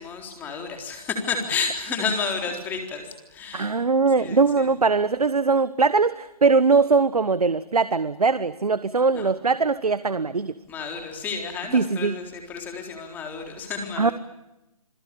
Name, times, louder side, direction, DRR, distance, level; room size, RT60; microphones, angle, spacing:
voice 1, 0.0-3.7 4.2-4.7 9.1-9.3 10.7-14.1, left 5 dB, 10° left, 4 dB, 3.9 m, -31 dB
voice 2, 3.5-10.5 11.7-12.2 14.0-14.1, right 4 dB, 75° right, 14 dB, 1.4 m, -21 dB
28.0 x 21.0 x 8.6 m, 0.95 s
figure-of-eight pair, 160°, 19 cm